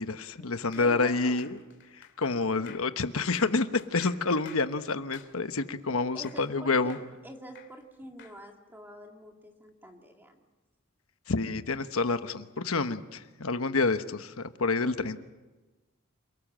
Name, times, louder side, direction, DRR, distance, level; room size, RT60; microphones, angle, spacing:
voice 1, 0.0-1.6 1.9-7.0 11.3-15.2, left 3 dB, 70° left, 10 dB, 1.1 m, -28 dB
sound 1, 0.7-6.6 6.9-8.4, left 7 dB, 55° left, 2.6 m, -51 dB
voice 2, 0.8-1.5 6.1-10.4 14.8-15.1, equal, 10° right, 2 dB, 2.3 m, -46 dB
28.0 x 19.0 x 7.6 m, 1.2 s
head